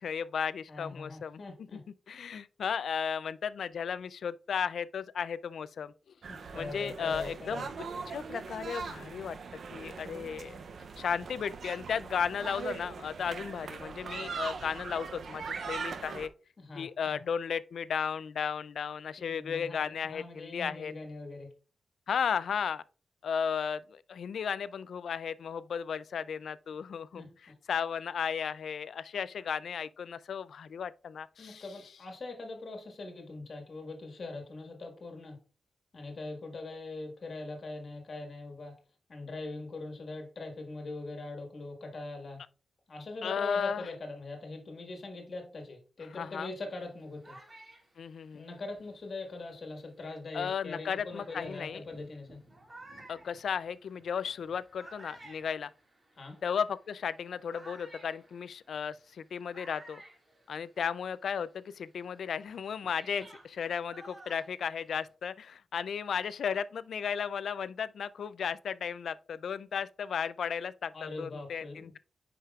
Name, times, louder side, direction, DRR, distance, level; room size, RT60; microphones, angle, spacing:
voice 1, 0.0-1.8 2.1-5.9 6.5-9.4 9.7-10.6 11.0-16.3 16.7-20.9 22.1-22.8 23.2-31.9 43.2-43.9 46.1-46.5 48.0-48.5 50.3-51.8 53.1-55.7 56.4-60.0 60.5-72.0, left 7 dB, 70° left, 0.3 m, -35 dB
voice 2, 0.7-1.8 6.3-7.7 16.6-17.2 19.2-21.5 27.1-27.3 31.4-35.4 35.9-38.7 39.1-42.4 42.9-47.4 48.3-52.4 56.2-56.4 70.9-72.0, left 2 dB, 45° left, 1.5 m, -42 dB
sound 1, 6.2-16.3, right 5 dB, 55° right, 0.5 m, -41 dB
sound 2, 46.8-49.8 50.5-50.6 51.1-61.1 61.4-65.1, right 2 dB, 25° right, 1.8 m, -55 dB
10.0 x 4.9 x 2.3 m
wide cardioid pair, 170°, 0 cm